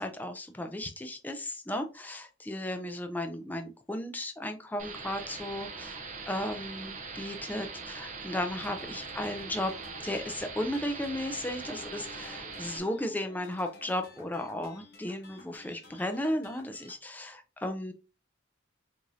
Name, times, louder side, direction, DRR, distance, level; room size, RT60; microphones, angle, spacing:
voice 1, 0.0-9.7 10.0-17.9, left 1 dB, 10° left, 6 dB, 0.3 m, -35 dB
sound 1, 4.8-12.8, right 4 dB, 40° right, 0.6 m, -42 dB
sound 2, 8.6-17.0, left 2 dB, 50° left, 0.9 m, -52 dB
4.7 x 2.6 x 2.7 m, 0.30 s
head